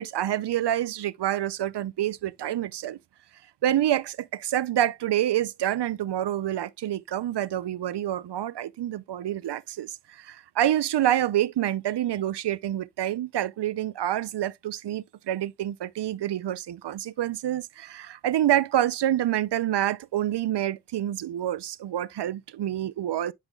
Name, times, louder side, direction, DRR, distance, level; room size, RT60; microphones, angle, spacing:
voice 1, 0.0-3.0 3.6-23.3, right 12 dB, 70° right, 0.6 m, -27 dB
8.9 x 5.7 x 2.3 m
cardioid pair, 65°, 43 cm